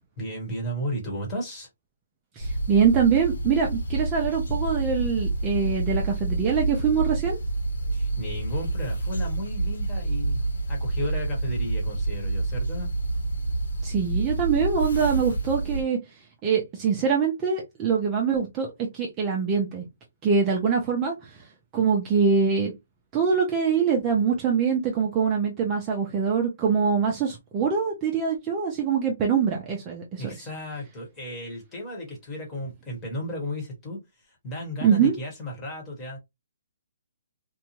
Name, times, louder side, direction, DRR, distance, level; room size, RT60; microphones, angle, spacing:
voice 1, 0.2-1.7 7.9-10.4 10.7-12.9 30.2-36.2, equal, 15° left, 1.2 m, -34 dB
sound 1, 2.4-15.8, right 2 dB, 85° left, 1.1 m, -28 dB
voice 2, 2.4-7.4 13.8-16.0 16.4-18.7 18.9-19.8 20.2-21.1 21.7-22.7 23.1-30.2 34.8-35.1, right 6 dB, 20° right, 0.6 m, -24 dB
2.6 x 2.2 x 2.9 m
hypercardioid pair, 160°, 0 cm